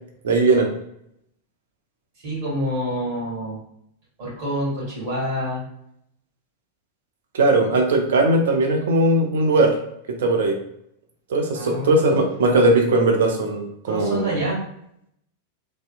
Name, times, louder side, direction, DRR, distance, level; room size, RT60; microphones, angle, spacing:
voice 1, 0.2-0.7 7.3-9.7 10.2-10.6 11.3-14.3, right 2 dB, 60° right, 2 dB, 0.5 m, -19 dB
voice 2, 2.2-3.6 4.2-5.6 11.5-12.2 13.8-14.6, equal, 45° right, -5 dB, 1.4 m, -27 dB
2.7 x 2.1 x 2.4 m, 0.73 s
figure-of-eight pair, 90°, 0 cm